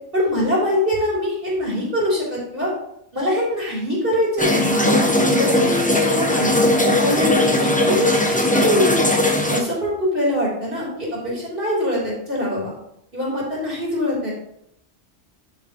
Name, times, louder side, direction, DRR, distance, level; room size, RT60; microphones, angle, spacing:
voice 1, 0.1-2.7 3.1-6.6 7.0-9.0 9.5-12.7 13.1-14.3, left 1 dB, 55° right, -6 dB, 3.9 m, -23 dB
sound 1, 4.4-9.6, left 1 dB, 10° left, 0.7 m, -18 dB
10.5 x 7.7 x 3.0 m, 0.75 s
omnidirectional pair, 1.1 m